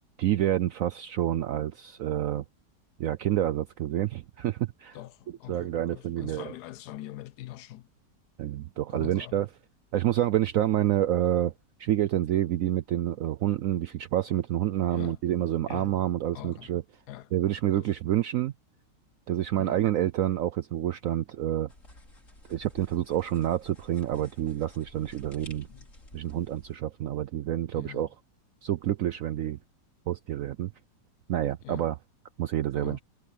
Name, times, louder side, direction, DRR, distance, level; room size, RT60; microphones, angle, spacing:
voice 1, 0.2-2.4 3.0-5.0 5.3-6.5 8.4-9.5 9.9-11.5 11.8-16.8 17.3-18.5 19.3-21.7 22.5-25.7 26.1-28.1 28.6-29.6 30.1-30.7 31.3-32.0 32.4-33.0, right 12 dB, 75° right, 0.7 m, -28 dB
voice 2, 4.9-7.9 8.9-9.4 14.9-15.2 15.7-15.9 16.3-16.7 17.1-17.3 17.7-17.9 19.6-19.8 25.7-25.9 27.7-28.0 31.6-31.9 32.7-33.0, left 15 dB, 75° left, 1.0 m, -43 dB
sound 1, 21.7-26.8, left 1 dB, 45° left, 6.1 m, -52 dB
omnidirectional pair, 1.9 m